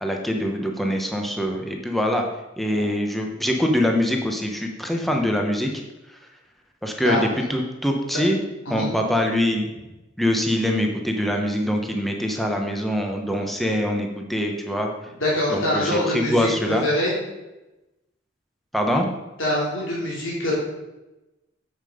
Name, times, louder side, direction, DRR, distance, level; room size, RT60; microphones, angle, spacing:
voice 1, 0.0-2.2 2.6-5.7 6.8-8.4 8.7-9.7 10.2-14.9 15.5-16.8 18.7-19.1, equal, ahead, 2 dB, 1.0 m, -24 dB
voice 2, 15.2-17.2 19.4-20.6, left 1 dB, 85° left, -5 dB, 3.2 m, -24 dB
7.5 x 7.3 x 5.1 m, 1.0 s
head